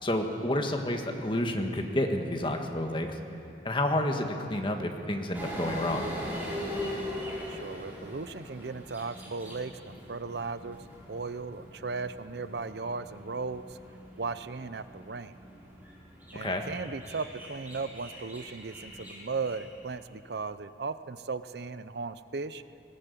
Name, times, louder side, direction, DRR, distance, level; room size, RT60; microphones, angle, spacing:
voice 1, 0.0-3.2 3.6-6.1 16.3-16.6, left 1 dB, 30° left, 4 dB, 1.6 m, -30 dB
sound 1, 5.3-20.0, equal, 10° right, 4.8 m, -41 dB
voice 2, 7.5-10.8 11.1-13.6 14.2-15.4 16.3-22.6, right 4 dB, 70° right, 13 dB, 0.6 m, -36 dB
20.5 x 17.0 x 8.4 m, 2.6 s
head